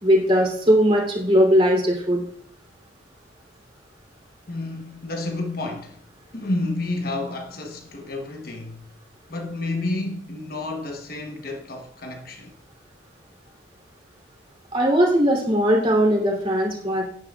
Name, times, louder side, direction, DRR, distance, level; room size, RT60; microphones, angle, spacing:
voice 1, 0.0-2.2 14.7-17.0, equal, 30° right, 3.0 m, -19 dB
voice 2, 4.5-6.1 6.3-8.9 9.3-12.6, left 2 dB, 50° left, 1.1 m, -30 dB
16.5 x 9.8 x 2.4 m
head